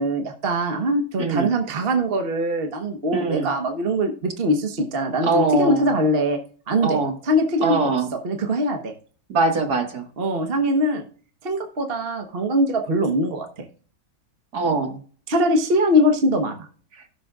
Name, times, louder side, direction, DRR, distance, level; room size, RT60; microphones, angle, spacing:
voice 1, 0.0-6.4 6.7-7.0 7.3-7.9 8.2-8.9 10.2-11.0 11.4-13.5 15.3-16.7, equal, 35° right, 4 dB, 1.1 m, -22 dB
voice 2, 1.2-1.5 3.1-3.5 5.2-5.9 6.8-7.1 7.6-8.1 9.3-10.1 14.5-15.0, right 3 dB, 50° right, 4 dB, 2.0 m, -22 dB
17.5 x 6.4 x 2.4 m, 0.43 s
omnidirectional pair, 2.2 m